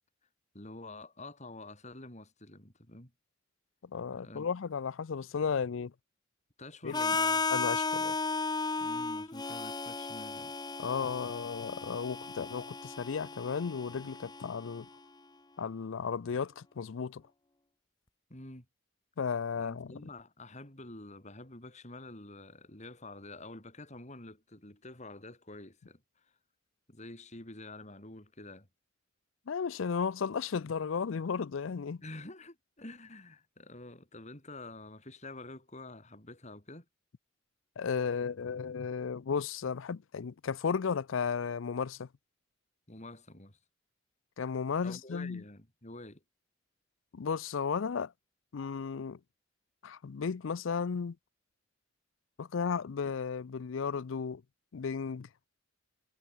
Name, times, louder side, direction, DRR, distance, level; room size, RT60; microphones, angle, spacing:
voice 1, 0.5-3.1 4.1-4.5 6.6-7.5 8.8-10.5 18.3-18.7 19.6-26.0 26.9-28.7 32.0-36.8 42.9-43.6 44.8-46.2, left 2 dB, 35° left, 4.6 m, -48 dB
voice 2, 3.9-5.9 6.8-6.9 7.5-8.2 10.8-14.9 15.6-17.2 19.2-20.1 29.5-32.0 37.8-42.1 44.4-45.4 47.1-48.1 48.5-49.2 49.8-51.2 52.4-54.4 54.7-55.3, left 6 dB, 80° left, 0.5 m, -34 dB
Harmonica, 6.9-14.8, left 4 dB, 20° left, 1.0 m, -35 dB
head